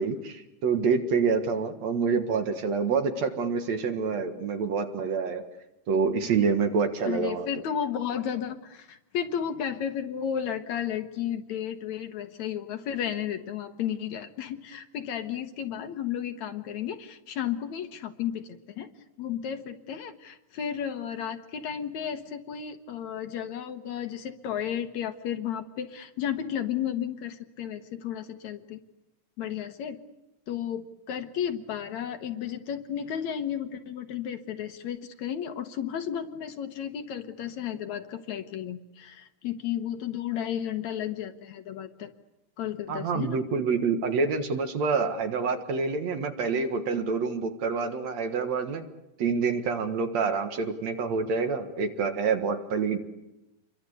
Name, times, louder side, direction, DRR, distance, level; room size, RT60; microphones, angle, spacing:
voice 1, 0.0-5.4 5.9-7.5 42.9-48.8 49.2-53.0, right 5 dB, 60° right, 7 dB, 2.7 m, -27 dB
voice 2, 7.1-18.9 19.2-28.8 29.4-30.0 30.5-42.1 42.6-43.4, left 9 dB, 65° left, 8 dB, 2.3 m, -33 dB
28.0 x 23.0 x 8.2 m, 0.94 s
omnidirectional pair, 3.8 m